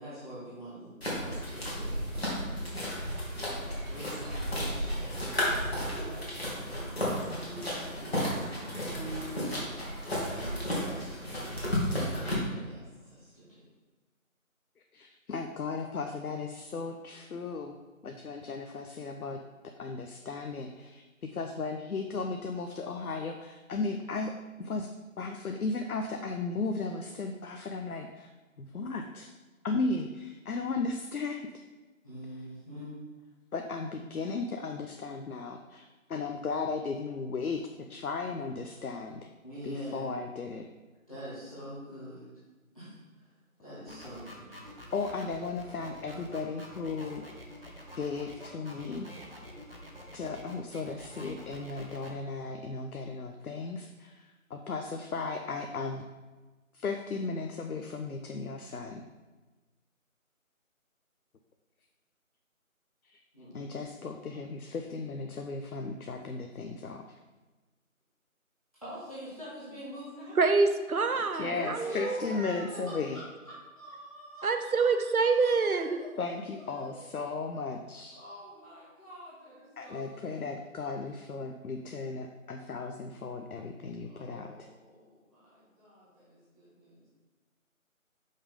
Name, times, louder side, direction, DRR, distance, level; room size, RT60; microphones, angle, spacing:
voice 1, 0.0-2.0 3.9-8.4 8.9-9.9 10.3-11.4 12.1-13.7 18.1-18.4 32.0-33.0 39.4-40.1 41.1-42.3 42.7-43.3 43.6-44.6 63.3-63.8 68.8-70.4 71.5-72.4 72.9-74.9 75.2-77.1 78.1-80.5 84.1-87.1, equal, 25° left, -12 dB, 1.6 m, -45 dB
sound 1, 1.0-12.4, equal, 45° left, 1.9 m, -33 dB
voice 2, 14.9-17.8 18.0-24.9 25.2-28.3 28.6-29.3 29.6-31.5 33.5-39.3 39.6-40.7 44.9-47.2 47.9-49.1 50.1-56.1 56.7-59.0 63.0-63.2 63.5-67.0 71.3-73.2 76.2-78.2 79.8-84.5, left 4 dB, 85° left, 5 dB, 0.6 m, -36 dB
sound 2, 43.9-52.1, equal, 40° right, 0.9 m, -47 dB
voice 3, 70.4-72.9 74.4-76.0, right 4 dB, 85° right, 7 dB, 0.7 m, -27 dB
5.4 x 5.1 x 3.7 m, 1.2 s
figure-of-eight pair, 175°, 42 cm